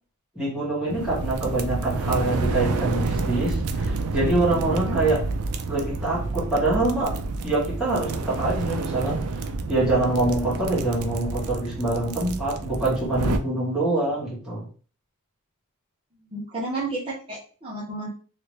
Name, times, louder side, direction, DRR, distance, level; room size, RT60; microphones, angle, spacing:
voice 1, 0.3-5.2 5.7-7.1 7.4-9.2 9.7-14.7, right 2 dB, 5° right, -8 dB, 1.7 m, -25 dB
sound 1, 0.9-13.4, right 3 dB, 80° right, 0.4 m, -29 dB
voice 2, 16.3-18.1, right 2 dB, 25° right, -9 dB, 0.9 m, -31 dB
3.1 x 2.8 x 3.2 m, 0.39 s
head